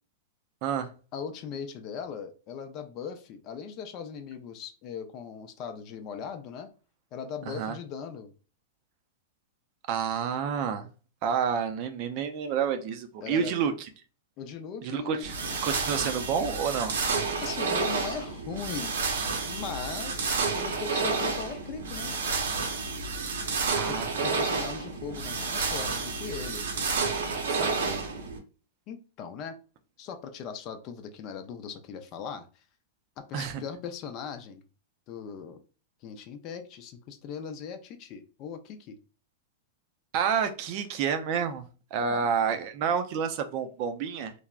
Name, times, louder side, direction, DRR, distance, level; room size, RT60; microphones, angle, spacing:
voice 1, 1.1-6.7 7.1-8.3 13.2-13.6 14.4-15.3 17.4-19.0 19.4-22.2 23.9-26.6 28.9-29.6 30.0-32.5 33.2-34.6 35.1-35.6 36.0-39.0 42.0-42.3, left 6 dB, 40° left, 0.4 m, -39 dB
voice 2, 7.5-7.8 9.9-10.9 11.2-13.7 14.8-16.9 23.7-24.3 27.5-28.1 33.3-33.6 40.1-41.6 41.9-44.3, right 7 dB, 45° right, 0.4 m, -29 dB
sound 1, 15.2-28.4, right 4 dB, 85° right, 0.7 m, -30 dB
3.3 x 2.0 x 2.4 m
hypercardioid pair, 140°, 0 cm